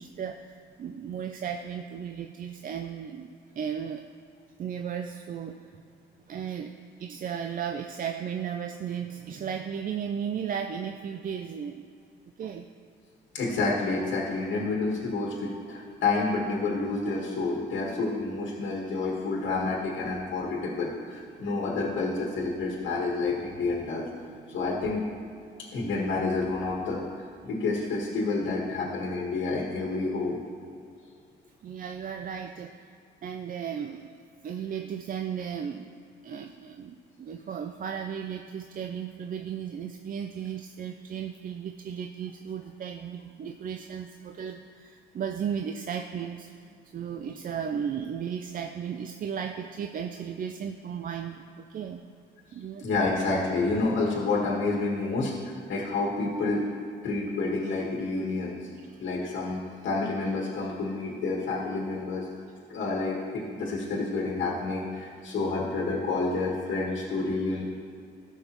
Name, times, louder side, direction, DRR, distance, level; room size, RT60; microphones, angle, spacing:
voice 1, 0.0-4.1 4.6-5.7 6.3-6.7 7.0-11.8 12.4-12.7 31.6-32.9 33.2-35.9 36.2-52.0 52.5-52.9 58.9-59.0, right 7 dB, 45° right, 6 dB, 0.4 m, -35 dB
voice 2, 13.3-24.1 24.5-25.0 25.7-27.1 27.4-30.4 52.8-56.6 57.0-58.7 59.0-59.6 59.8-62.3 62.7-67.6, left 3 dB, 70° left, -3 dB, 1.6 m, -29 dB
14.5 x 5.7 x 3.0 m, 2.4 s
cardioid pair, 90°, 20 cm